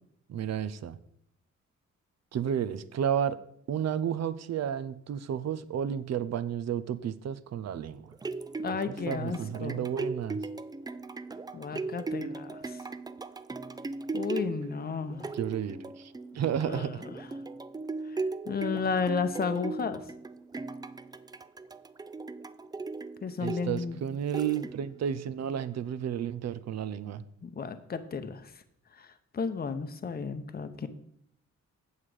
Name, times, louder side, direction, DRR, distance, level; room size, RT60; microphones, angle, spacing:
voice 1, 0.3-1.0 2.3-3.4 3.7-8.1 9.1-10.5 15.3-17.0 23.4-27.3, right 9 dB, 60° right, 15 dB, 0.6 m, -32 dB
sound 1, 7.9-25.1 25.6-25.7, right 3 dB, 15° right, 0.3 m, -38 dB
voice 2, 8.6-9.8 11.5-12.8 14.1-15.3 16.6-17.1 18.1-20.0 23.2-24.0 27.4-28.6 28.9-30.9, left 5 dB, 35° left, 9 dB, 0.7 m, -33 dB
8.1 x 7.4 x 4.9 m, 0.70 s
cardioid pair, 115°, 29 cm